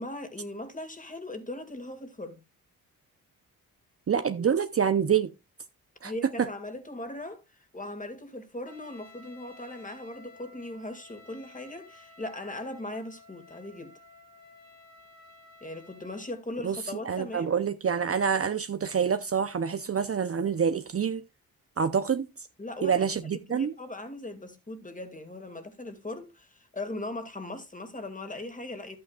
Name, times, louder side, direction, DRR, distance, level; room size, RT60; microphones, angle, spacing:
voice 1, 0.0-2.4 6.0-13.9 15.6-17.5 22.6-23.0 23.5-29.0, left 2 dB, 20° left, 2.3 m, -39 dB
voice 2, 4.1-5.3 6.0-6.1 6.4-6.5 16.6-16.8 17.0-21.2 21.8-22.3 22.8-23.7, right 7 dB, 40° right, 0.7 m, -26 dB
Trumpet, 8.7-16.3, left 3 dB, 45° left, 4.0 m, -54 dB
11.5 x 8.6 x 2.4 m
cardioid pair, 70°, 36 cm